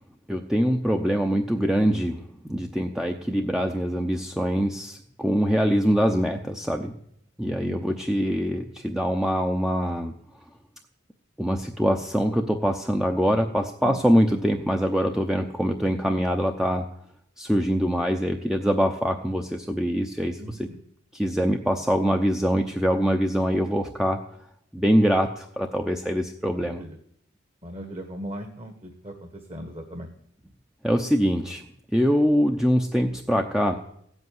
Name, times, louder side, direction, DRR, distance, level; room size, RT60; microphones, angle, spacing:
voice 1, 0.3-2.2 2.5-6.9 7.4-10.1 11.4-16.8 17.4-20.4 21.1-24.2 24.7-26.8 30.8-31.6 31.9-33.8, equal, 5° right, 3 dB, 0.7 m, -24 dB
voice 2, 7.4-7.8 13.8-14.0 20.4-20.8 26.5-27.0 27.6-30.1, equal, 30° right, 5 dB, 1.5 m, -38 dB
16.0 x 8.1 x 9.5 m, 0.70 s
head